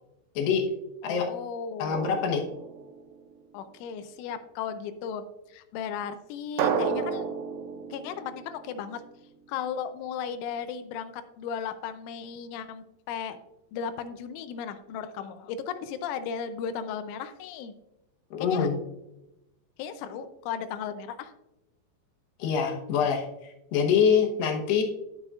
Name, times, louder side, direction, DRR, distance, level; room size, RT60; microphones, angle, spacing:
voice 1, 1.0-2.2 3.5-7.3 7.9-9.0 9.5-13.4 13.7-17.7 18.4-18.7 19.8-21.3, left 7 dB, 85° left, 10 dB, 3.1 m, -36 dB
voice 2, 1.8-2.4 18.3-18.8 22.4-24.8, left 7 dB, 70° left, 1 dB, 2.9 m, -25 dB
Drum, 1.9-3.5 6.6-9.3, right 6 dB, 80° right, 3.1 m, -32 dB
16.5 x 5.7 x 2.4 m, 0.92 s
omnidirectional pair, 5.4 m